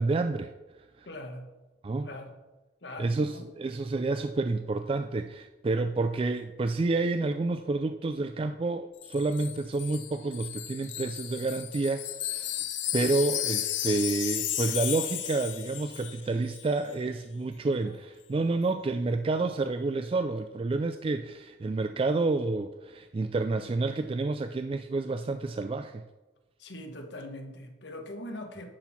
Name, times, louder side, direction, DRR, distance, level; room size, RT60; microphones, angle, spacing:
voice 1, 0.0-1.1 1.8-2.1 3.0-12.7 12.9-26.1, right 3 dB, 30° right, 8 dB, 0.3 m, -29 dB
voice 2, 1.0-1.5 2.0-2.3 2.8-3.5 17.8-17.9 26.6-28.8, left 1 dB, 65° left, 5 dB, 1.2 m, -41 dB
Wind chime, 9.0-16.3 16.5-16.7, left 13 dB, 90° left, 0.6 m, -34 dB
10.5 x 4.6 x 5.8 m, 1.1 s
head